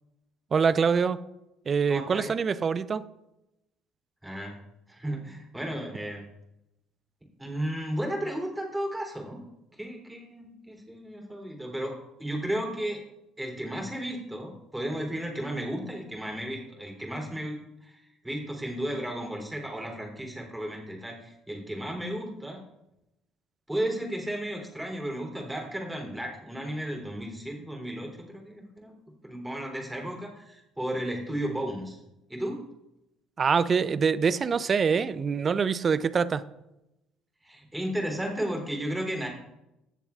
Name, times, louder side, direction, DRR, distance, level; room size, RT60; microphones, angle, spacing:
voice 1, 0.5-1.2 1.7-3.0 33.4-36.4, right 6 dB, 40° right, 16 dB, 0.5 m, -24 dB
voice 2, 1.9-2.3 4.2-4.6 4.9-6.2 7.4-9.4 9.8-13.0 13.4-22.6 23.7-29.0 29.2-32.0 32.3-32.6 37.4-39.3, right 1 dB, 10° right, 0 dB, 3.2 m, -34 dB
16.5 x 7.0 x 2.4 m, 0.90 s
hypercardioid pair, 55°, 0 cm